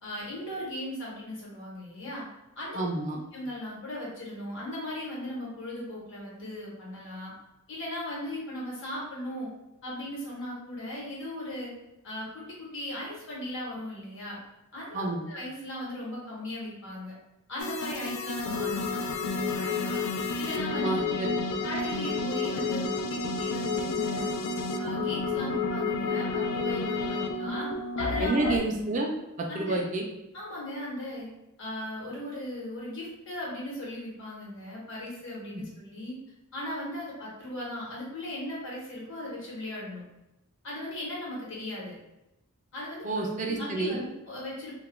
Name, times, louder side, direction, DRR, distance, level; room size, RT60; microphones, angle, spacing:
voice 1, 0.0-2.2 2.6-2.9 3.3-7.3 7.7-9.5 9.8-11.7 12.0-14.4 14.7-17.1 17.5-20.0 20.4-21.3 21.6-24.4 24.8-27.7 28.0-28.5 29.5-29.8 30.3-31.3 31.6-36.2 36.5-40.0 40.6-42.0 42.7-43.1 43.5-44.8, left 1 dB, 60° left, -5 dB, 1.0 m, -37 dB
voice 2, 2.7-3.2 14.9-15.2 20.8-21.3 28.2-29.1 29.4-30.0 35.5-35.6 43.0-44.0, right 2 dB, 35° right, 0 dB, 0.4 m, -29 dB
sound 1, 17.6-28.6, left 3 dB, 85° left, 0.3 m, -30 dB
2.2 x 2.1 x 3.1 m, 0.95 s
head